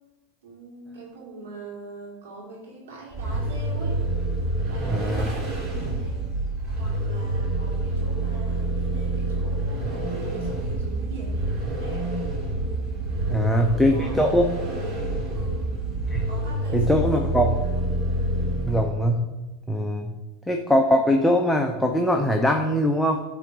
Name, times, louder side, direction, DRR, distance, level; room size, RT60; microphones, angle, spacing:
voice 1, 0.4-4.0 4.6-6.2 6.8-12.1 13.3-14.3 15.3-15.7 16.3-17.5 19.9-20.2, right 3 dB, 85° right, -2 dB, 2.7 m, -42 dB
Vehicle, 3.1-19.1, right 2 dB, 40° right, 2.7 m, -27 dB
voice 2, 4.9-5.4 13.3-14.5 16.1-16.2 16.7-17.5 18.6-19.3 19.7-20.1 20.5-23.2, equal, 5° left, 2 dB, 0.6 m, -22 dB
10.5 x 3.8 x 4.8 m, 1.1 s
supercardioid pair, 130°, 0 cm